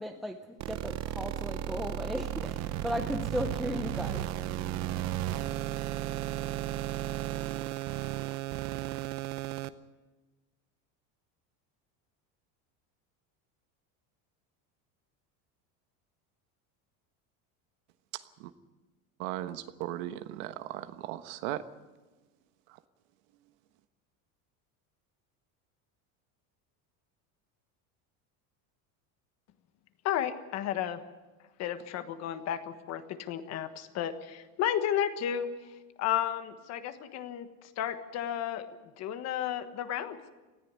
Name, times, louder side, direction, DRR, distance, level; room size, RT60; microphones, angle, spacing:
voice 1, 0.0-4.7, left 1 dB, ahead, 5 dB, 0.6 m, -36 dB
sound 1, 0.6-9.7, right 13 dB, 45° right, 0.7 m, -34 dB
voice 2, 18.1-18.5 19.2-21.6, right 14 dB, 70° right, 11 dB, 1.3 m, -37 dB
voice 3, 30.0-31.0 31.6-38.7 39.0-40.3, left 10 dB, 40° left, 9 dB, 1.4 m, -33 dB
19.0 x 14.5 x 9.5 m, 1.2 s
cardioid pair, 165°, 40 cm